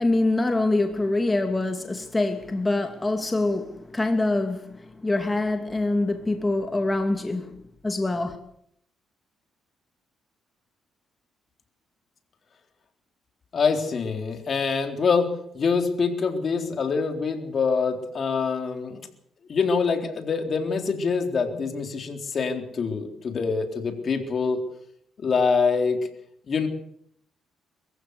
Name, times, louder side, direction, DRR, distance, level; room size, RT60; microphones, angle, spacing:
voice 1, 0.0-8.4, left 2 dB, 20° left, 2.7 m, -25 dB
voice 2, 13.5-15.3 15.5-19.1 19.5-24.6 25.2-26.0 26.5-26.7, left 5 dB, 50° left, 3.8 m, -25 dB
23.0 x 15.0 x 8.3 m
cardioid pair, 90°, 0 cm